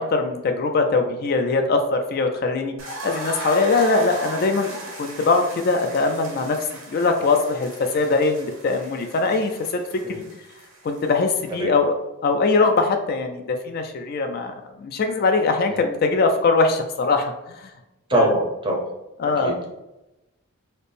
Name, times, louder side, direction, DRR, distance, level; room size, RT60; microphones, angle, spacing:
voice 1, 0.0-2.7 3.0-6.6 6.9-9.8 10.1-10.2 10.8-11.9 12.2-17.6 18.1-18.3 19.2-19.5, left 3 dB, 45° left, 5 dB, 0.3 m, -21 dB
sound 1, 2.8-11.5, right 2 dB, 60° right, 0.8 m, -37 dB
voice 2, 18.1-18.9 19.2-19.7, right 1 dB, 20° right, 0 dB, 0.6 m, -24 dB
4.1 x 2.0 x 3.3 m, 0.96 s
head